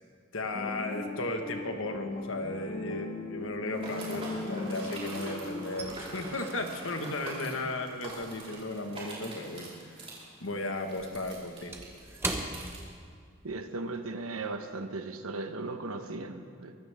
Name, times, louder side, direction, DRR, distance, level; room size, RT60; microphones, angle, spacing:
voice 1, 0.3-10.1 10.4-11.7, left 2 dB, 70° left, 4 dB, 1.5 m, -35 dB
sound 1, 0.5-5.7, left 2 dB, 30° left, 1.2 m, -38 dB
sound 2, 2.2-2.8 3.0-5.0 5.3-10.0 10.3-13.6 13.9-14.1 14.5-14.8, right 2 dB, 10° right, 1.1 m, -41 dB
sound 3, 3.7-12.8, right 2 dB, 30° right, 4.2 m, -43 dB
voice 2, 13.4-16.8, right 3 dB, 90° right, 7 dB, 1.1 m, -37 dB
23.5 x 15.0 x 3.6 m, 2.1 s
head